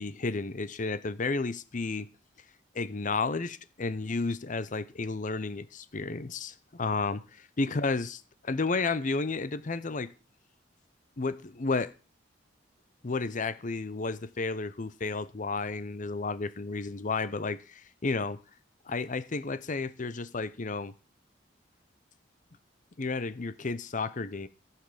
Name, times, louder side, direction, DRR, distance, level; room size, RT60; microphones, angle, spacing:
voice 1, 0.0-2.1 2.7-8.2 8.4-10.1 11.2-11.9 13.0-18.4 18.9-20.9 23.0-24.5, left 3 dB, 45° left, 0.7 m, -32 dB
15.0 x 5.8 x 6.8 m
head